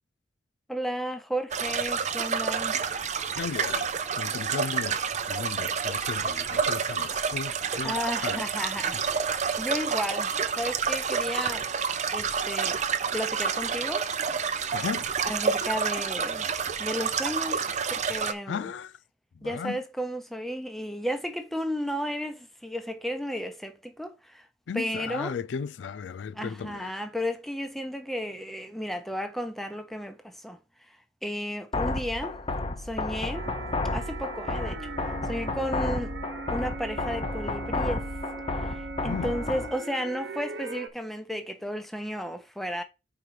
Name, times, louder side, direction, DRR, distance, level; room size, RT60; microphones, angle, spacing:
voice 1, 0.7-2.8 5.6-5.7 7.8-10.3 10.6-11.7 12.1-12.8 13.1-14.1 15.3-16.5 16.8-18.7 19.4-24.5 24.7-25.4 26.3-30.6 30.9-31.0 31.2-32.4 32.8-33.5 33.9-36.2 36.5-38.1 38.5-42.8, equal, ahead, 0.9 m, -33 dB
sound 1, 1.5-18.3, right 6 dB, 40° right, 0.6 m, -29 dB
voice 2, 3.4-5.0 5.3-8.0 8.2-8.5 14.7-15.1 18.5-19.0 19.4-19.8 24.7-26.9 39.0-39.3, left 6 dB, 85° left, 0.4 m, -35 dB
sound 2, 31.7-39.7, left 2 dB, 30° left, 0.8 m, -32 dB
sound 3, 33.3-40.9, right 3 dB, 80° right, 1.1 m, -39 dB
4.9 x 4.6 x 5.8 m
head